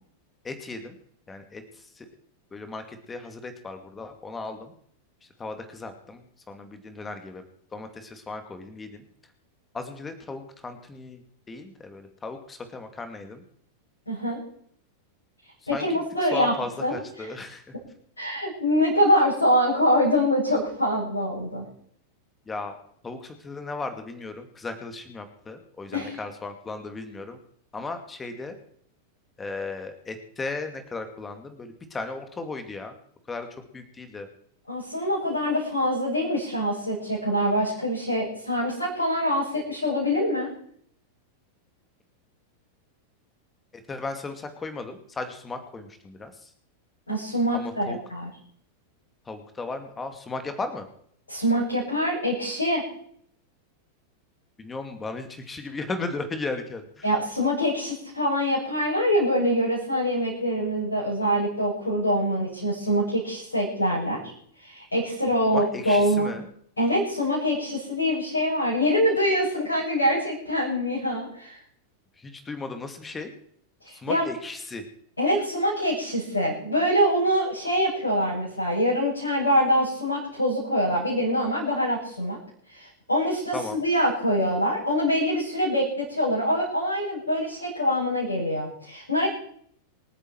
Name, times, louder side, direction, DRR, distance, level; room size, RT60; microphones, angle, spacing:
voice 1, 0.4-1.0 1.3-2.1 2.5-4.7 5.4-7.4 7.7-9.0 9.7-11.2 11.5-13.4 15.7-15.8 16.2-17.6 22.5-22.8 23.0-27.4 27.7-28.6 29.4-32.9 33.3-33.5 33.7-34.3 43.7-46.5 47.5-48.0 49.3-50.9 54.6-57.1 65.5-66.5 72.2-73.3 73.9-74.8 83.5-83.8, left 3 dB, 15° left, 7 dB, 2.4 m, -36 dB
voice 2, 14.1-14.4 15.7-16.5 16.8-17.3 18.2-21.6 25.9-26.2 34.7-40.5 47.1-48.3 51.3-52.8 57.0-64.3 64.6-66.3 66.8-71.6 73.8-74.3 75.2-82.4 82.7-89.3, equal, 80° left, -7 dB, 7.7 m, -24 dB
27.5 x 9.9 x 4.6 m, 0.64 s
figure-of-eight pair, 90°, 0 cm